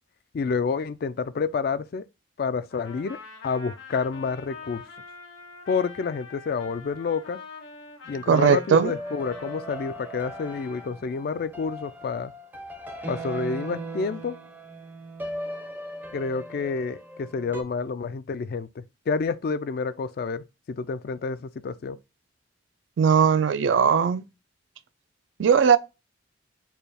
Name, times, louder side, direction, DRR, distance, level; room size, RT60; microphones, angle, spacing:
voice 1, 0.3-2.0 2.4-3.2 3.4-4.8 5.7-7.4 8.1-12.3 13.1-14.4 16.1-22.0, left 5 dB, 50° left, 0.3 m, -29 dB
Trumpet, 2.7-10.9, left 4 dB, 75° left, 1.5 m, -45 dB
sound 1, 8.1-17.6, right 1 dB, 10° right, 0.5 m, -39 dB
voice 2, 8.3-8.9 23.0-24.2 25.4-25.8, right 7 dB, 75° right, 0.3 m, -19 dB
4.4 x 2.3 x 3.3 m
head